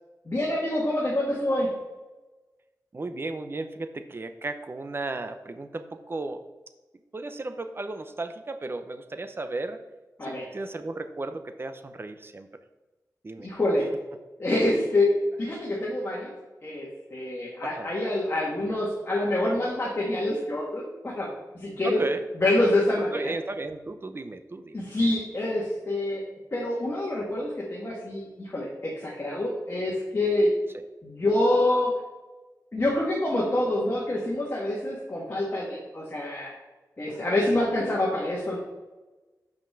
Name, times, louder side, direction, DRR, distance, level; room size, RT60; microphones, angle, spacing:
voice 1, 0.3-1.7 10.2-10.5 13.4-13.9 14.4-15.1 15.4-16.3 16.6-21.3 21.6-22.0 22.4-23.3 24.7-26.2 26.5-30.5 31.0-31.9 32.7-36.5 37.0-38.6, left 1 dB, 35° left, -5 dB, 1.8 m, -26 dB
voice 2, 2.9-6.4 7.1-9.8 10.2-12.5 13.2-13.5 17.6-17.9 21.8-22.2 23.0-24.8 30.7-30.9 37.1-37.3, right 2 dB, 35° right, 9 dB, 0.6 m, -35 dB
5.8 x 5.2 x 6.0 m, 1.2 s
wide cardioid pair, 100°, 7 cm